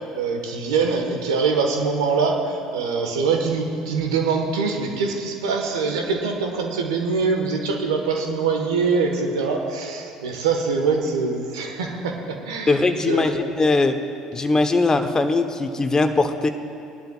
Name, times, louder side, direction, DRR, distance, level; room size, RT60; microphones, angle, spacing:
voice 1, 0.1-12.8 13.1-13.4, right 4 dB, 80° right, 3 dB, 1.2 m, -23 dB
voice 2, 12.7-14.0 14.3-16.5, left 3 dB, 25° left, 8 dB, 0.9 m, -20 dB
20.0 x 11.5 x 2.3 m, 2.7 s
hypercardioid pair, 60°, 3 cm